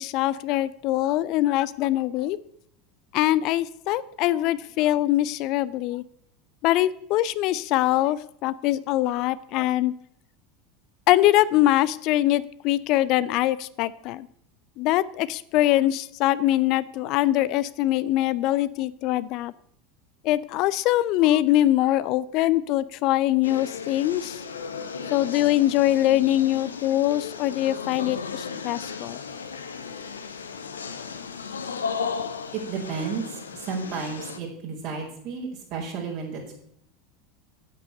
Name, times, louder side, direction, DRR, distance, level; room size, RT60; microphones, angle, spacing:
voice 1, 0.0-2.4 3.1-6.0 6.6-9.9 11.1-14.3 14.8-19.5 20.2-24.4 25.1-29.2, left 14 dB, 50° left, 17 dB, 0.5 m, -23 dB
sound 1, 23.4-34.4, left 6 dB, 80° left, 1.0 m, -35 dB
voice 2, 32.5-36.5, right 5 dB, 55° right, -1 dB, 4.6 m, -32 dB
8.8 x 8.6 x 6.7 m, 0.69 s
figure-of-eight pair, 80°, 0 cm